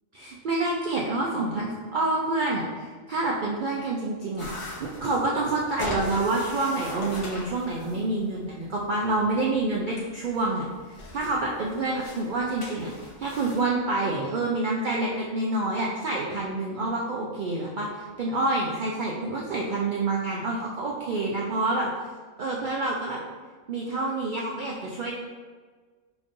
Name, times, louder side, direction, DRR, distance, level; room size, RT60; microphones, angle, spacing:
voice 1, 0.2-4.5 4.8-10.6 11.1-21.9 22.4-23.2 23.7-25.1, right 2 dB, 85° right, -3 dB, 0.4 m, -27 dB
sound 1, 4.4-13.6, left 1 dB, 35° left, 0.5 m, -40 dB
5.1 x 2.9 x 2.5 m, 1.5 s
omnidirectional pair, 1.4 m